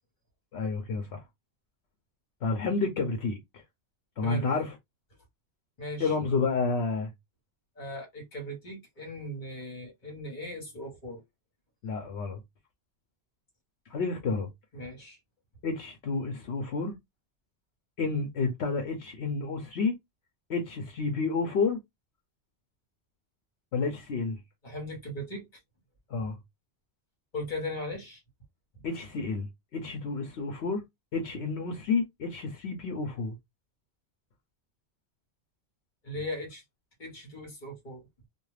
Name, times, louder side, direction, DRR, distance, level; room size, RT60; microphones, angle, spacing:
voice 1, 0.5-1.2 2.4-3.6 4.2-4.7 6.0-7.1 11.8-12.4 13.9-14.5 15.6-16.9 18.0-19.9 20.5-21.8 23.7-24.4 26.1-26.4 28.8-29.5 29.7-30.8 31.1-33.3, left 4 dB, 75° left, 0.9 m, -30 dB
voice 2, 4.2-4.5 5.8-6.1 7.8-11.2 14.7-15.2 24.6-25.5 27.3-28.2 36.0-36.6 37.0-38.0, left 1 dB, 45° left, 1.3 m, -38 dB
2.4 x 2.3 x 3.2 m
omnidirectional pair, 1.1 m